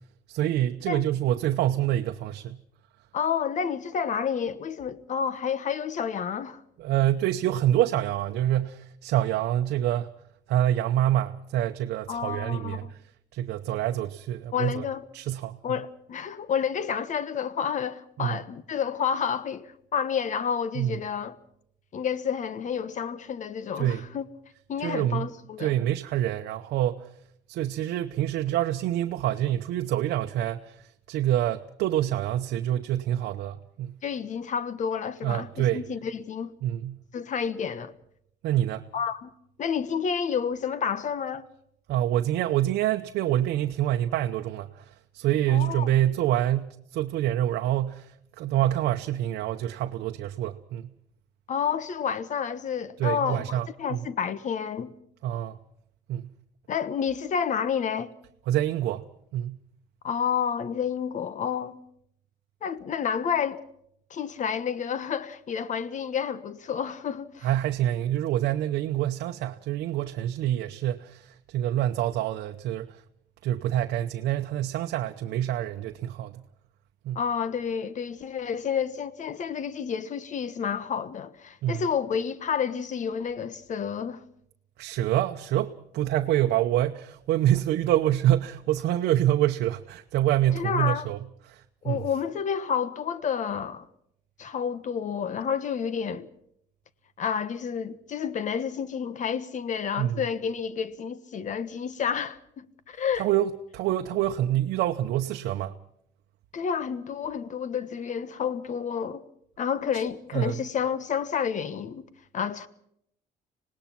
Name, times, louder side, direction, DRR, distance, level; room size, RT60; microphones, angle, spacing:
voice 1, 0.3-2.6 6.8-10.1 10.5-13.0 13.3-14.8 15.1-15.6 18.2-18.4 20.7-21.0 23.8-24.0 24.8-25.3 25.6-27.1 27.5-34.0 35.2-35.8 36.6-37.0 38.4-38.8 41.9-50.9 53.0-54.1 55.2-55.6 56.1-56.3 58.5-59.0 59.3-59.6 67.4-73.0 73.4-76.4 77.0-77.2 81.6-81.8 84.8-91.2 91.4-92.0 100.0-100.2 103.2-105.7 109.9-110.0 110.3-110.6, right 12 dB, 75° right, 0.9 m, -26 dB
voice 2, 3.1-6.6 12.1-12.9 14.5-15.0 15.6-21.3 21.9-24.3 24.7-25.8 34.0-36.5 37.1-37.9 38.9-39.3 39.6-41.4 45.5-46.0 51.5-54.9 56.7-58.1 60.0-61.8 62.6-63.6 64.1-67.5 77.1-84.2 90.5-91.1 91.8-93.9 94.4-96.3 97.2-103.3 106.5-109.2 109.6-112.1 112.3-112.7, left 7 dB, 45° left, 1.3 m, -30 dB
26.0 x 18.5 x 5.9 m
cardioid pair, 110°, 17 cm